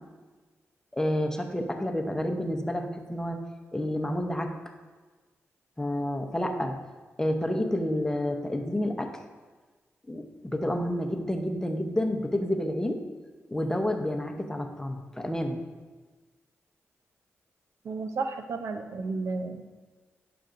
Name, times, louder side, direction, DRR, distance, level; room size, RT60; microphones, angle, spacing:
voice 1, 0.9-3.4 3.7-4.5 5.8-6.8 7.2-9.1 10.1-13.0 13.5-15.6, left 1 dB, 10° left, 3 dB, 0.8 m, -29 dB
voice 2, 17.8-19.6, right 3 dB, 75° right, 7 dB, 0.6 m, -32 dB
10.0 x 6.8 x 2.6 m, 1.3 s
cardioid pair, 80°, 5 cm